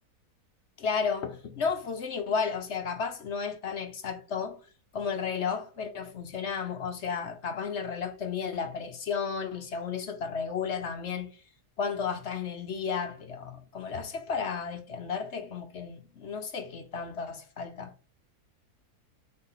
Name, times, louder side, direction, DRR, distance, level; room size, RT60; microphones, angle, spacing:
voice 1, 0.8-4.6 4.9-11.3 11.8-17.9, left 6 dB, 50° left, 1.0 m, -33 dB
4.4 x 4.3 x 5.6 m
omnidirectional pair, 1.7 m